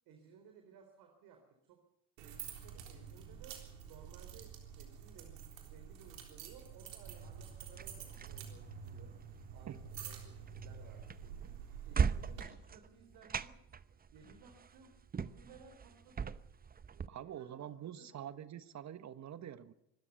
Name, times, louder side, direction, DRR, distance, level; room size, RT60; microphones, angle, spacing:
voice 1, 0.1-1.8 2.2-3.6 3.9-9.2 9.5-13.6 14.1-16.3 16.9-18.1, right 6 dB, 65° right, 5 dB, 3.8 m, -59 dB
sound 1, 2.2-12.4, right 8 dB, 85° right, 3.8 m, -49 dB
sound 2, 7.1-17.1, right 6 dB, 25° right, 0.8 m, -41 dB
voice 2, 17.1-19.7, right 10 dB, 45° right, 13 dB, 1.3 m, -46 dB
25.0 x 13.0 x 8.1 m, 0.83 s
hypercardioid pair, 75°, 38 cm